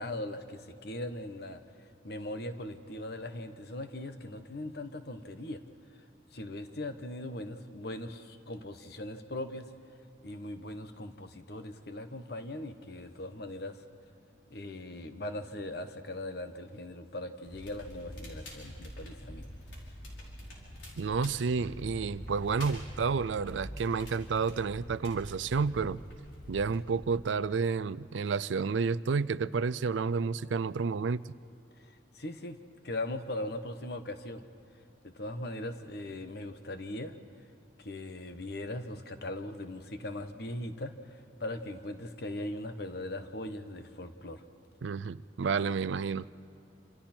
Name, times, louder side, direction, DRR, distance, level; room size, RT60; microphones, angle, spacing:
voice 1, 0.0-1.6 2.0-5.6 6.3-9.7 10.2-13.8 14.5-19.4 31.8-32.6 32.8-34.4 35.0-37.1 37.8-41.0 41.4-44.4, left 1 dB, 55° left, 8 dB, 1.2 m, -39 dB
Crackle, 17.4-26.8, equal, 80° left, 5.1 m, -45 dB
voice 2, 21.0-26.0 26.5-31.2 44.8-46.2, right 5 dB, 80° right, 18 dB, 0.4 m, -30 dB
28.0 x 26.5 x 4.4 m, 2.6 s
head